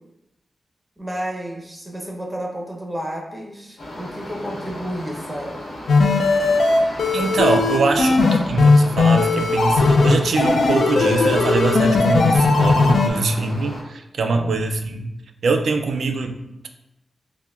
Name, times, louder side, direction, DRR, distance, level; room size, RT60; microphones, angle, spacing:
voice 1, 1.0-5.6 14.3-14.5, equal, 10° right, 0 dB, 0.6 m, -31 dB
sound 1, 3.8-13.8, left 1 dB, 70° left, 0.9 m, -34 dB
sound 2, 5.9-13.1, left 3 dB, 85° left, 0.4 m, -17 dB
voice 2, 7.1-15.1 15.4-16.3, right 3 dB, 80° right, 5 dB, 0.3 m, -23 dB
5.5 x 2.1 x 2.4 m, 0.91 s
wide cardioid pair, 140°, 0 cm